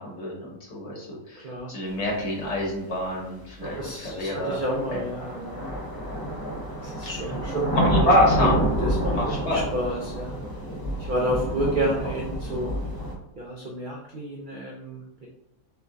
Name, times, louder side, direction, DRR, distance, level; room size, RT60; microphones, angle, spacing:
voice 1, 0.0-4.6 4.9-5.1 7.0-7.3 7.7-8.6 9.1-9.6, left 1 dB, 50° left, -2 dB, 1.2 m, -26 dB
sound 1, 2.6-2.7 3.6-13.1, equal, 30° left, 0.4 m, -28 dB
voice 2, 3.6-5.6 6.8-8.1 8.8-10.4 11.1-12.7 13.4-15.3, right 1 dB, 65° right, -2 dB, 0.5 m, -30 dB
6.4 x 2.2 x 2.6 m, 0.86 s
omnidirectional pair, 1.6 m